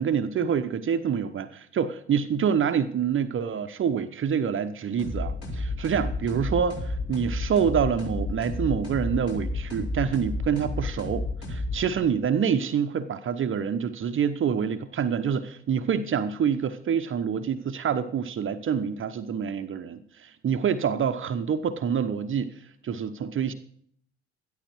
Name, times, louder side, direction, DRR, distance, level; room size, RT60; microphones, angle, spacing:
voice 1, 0.0-23.5, right 7 dB, 35° right, 1.0 m, -27 dB
sound 1, 5.0-12.1, left 2 dB, 45° left, 6.2 m, -32 dB
13.0 x 11.5 x 4.6 m
figure-of-eight pair, 55°, 33 cm